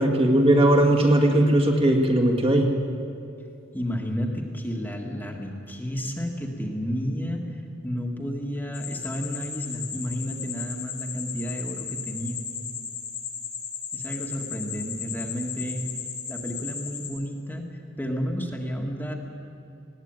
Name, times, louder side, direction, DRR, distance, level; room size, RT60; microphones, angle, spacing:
voice 1, 0.0-2.7, right 1 dB, 30° right, 1 dB, 1.9 m, -19 dB
voice 2, 3.7-7.5 7.8-12.4 13.9-15.9 16.3-17.7 18.0-19.2, equal, 10° left, 1 dB, 1.8 m, -31 dB
sound 1, 8.7-17.1, left 6 dB, 80° left, 6.8 m, -35 dB
20.0 x 16.0 x 9.0 m, 2.6 s
head